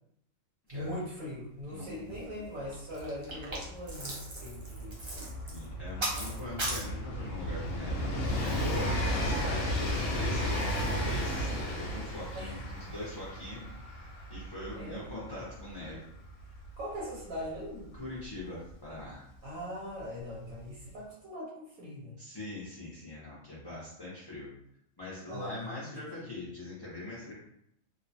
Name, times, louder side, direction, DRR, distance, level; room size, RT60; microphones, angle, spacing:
voice 1, 0.7-5.2 12.3-12.6 14.7-15.1 16.8-17.9 19.4-22.2 25.3-25.9 26.2-26.3, left 1 dB, 85° right, -7 dB, 1.3 m, -41 dB
sound 1, 1.6-1.7 1.9-2.2 2.6-6.8, right 1 dB, 35° right, 0.4 m, -38 dB
voice 2, 1.7-2.2 5.1-5.2 5.5-13.6 13.9-16.1 17.9-19.3 22.2-24.5 25.0-27.3, left 2 dB, 30° left, -8 dB, 0.4 m, -42 dB
Train, 2.1-2.2 2.4-19.0 20.0-20.1, equal, 70° left, 0.9 m, -34 dB
3.0 x 2.1 x 2.6 m, 0.75 s
omnidirectional pair, 1.4 m